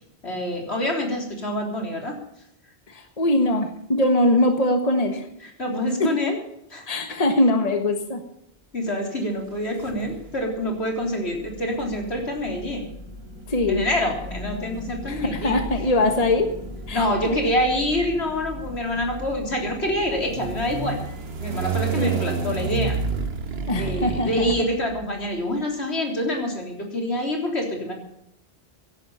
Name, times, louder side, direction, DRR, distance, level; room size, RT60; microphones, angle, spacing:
voice 1, 0.2-2.2 5.4-6.4 6.7-6.9 8.7-12.9 13.7-15.6 16.9-21.0 21.4-23.0 23.7-27.9, left 1 dB, 80° left, 1 dB, 3.9 m, -26 dB
voice 2, 2.9-5.3 6.0-6.1 6.9-8.2 13.5-13.8 15.1-16.5 16.9-17.0 17.4-17.5 22.0-22.3 23.7-24.5, left 1 dB, 35° left, 6 dB, 1.6 m, -22 dB
sound 1, 9.4-23.9, left 2 dB, 20° right, 5.5 m, -40 dB
sound 2, 9.8-10.5 11.6-25.3, right 5 dB, 70° right, 1.4 m, -32 dB
16.5 x 11.0 x 5.6 m, 0.79 s
omnidirectional pair, 1.1 m